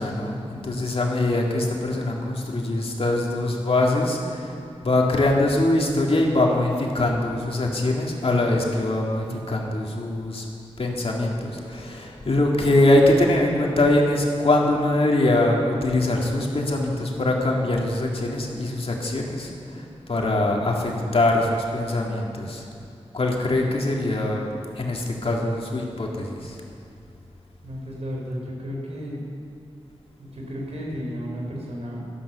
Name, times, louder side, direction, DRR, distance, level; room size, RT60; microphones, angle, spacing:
voice 1, 0.0-4.5 4.8-10.4 10.8-22.6 23.1-24.4 24.8-26.6, left 2 dB, 60° left, -1 dB, 2.2 m, -23 dB
voice 2, 27.6-29.2 30.2-32.0, equal, 70° right, -2 dB, 3.7 m, -33 dB
12.5 x 11.0 x 6.9 m, 2.6 s
wide cardioid pair, 90°, 11 cm